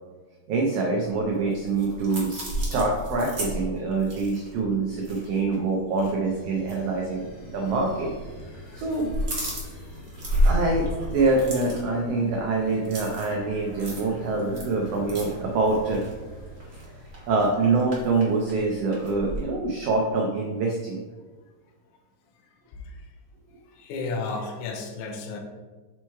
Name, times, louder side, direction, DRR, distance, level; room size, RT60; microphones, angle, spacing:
voice 1, 0.5-8.1 8.7-9.1 10.4-16.0 17.3-21.0, right 3 dB, 80° right, -1 dB, 1.4 m, -25 dB
sound 1, 1.3-5.6 5.9-6.1 6.6-6.8 7.6-8.3 8.5-19.4, equal, 50° right, 0.7 m, -32 dB
sound 2, 6.2-18.5, equal, 30° left, 2.1 m, -45 dB
voice 2, 8.5-8.8 9.6-9.8 22.4-23.1 23.7-25.4, left 3 dB, 75° left, 2 dB, 2.2 m, -34 dB
5.8 x 4.6 x 4.5 m, 1.3 s
omnidirectional pair, 3.7 m